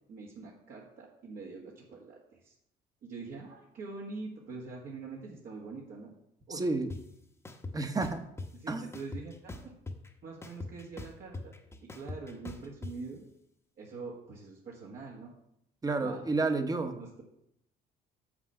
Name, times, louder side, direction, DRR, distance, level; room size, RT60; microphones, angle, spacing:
voice 1, 0.1-2.5 3.0-6.1 6.5-6.6 8.5-9.6 10.2-11.5 11.8-13.3 13.8-15.3 16.0-16.2 16.9-17.2, right 4 dB, 60° right, -3 dB, 1.5 m, -44 dB
voice 2, 6.6-6.9 7.7-8.2 8.7-8.9 15.8-17.0, right 3 dB, 20° right, 6 dB, 1.0 m, -30 dB
sound 1, 6.9-7.0 7.4-8.5 8.9-10.1 10.4-12.9, left 2 dB, 15° left, 1.0 m, -41 dB
6.8 x 6.1 x 5.5 m, 0.78 s
cardioid pair, 110°, 17 cm